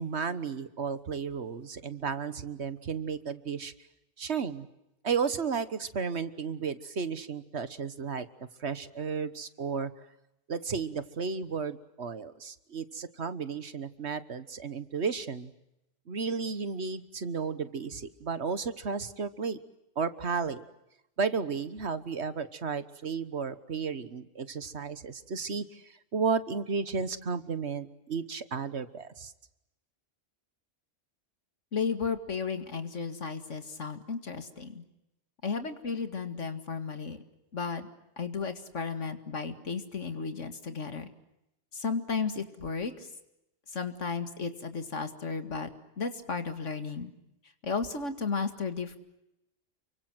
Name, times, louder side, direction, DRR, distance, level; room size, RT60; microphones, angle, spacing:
voice 1, 0.0-3.7 4.2-4.7 5.0-8.3 8.6-9.9 10.5-15.5 16.1-19.6 20.0-20.6 21.2-29.3, right 5 dB, 60° right, 13 dB, 1.6 m, -33 dB
voice 2, 31.7-34.8 35.4-37.2 37.5-37.9 38.2-41.1 41.7-43.1 43.7-45.7 46.0-47.1 47.6-49.0, left 5 dB, 75° left, 8 dB, 2.4 m, -34 dB
29.5 x 24.0 x 7.8 m, 0.87 s
omnidirectional pair, 1.3 m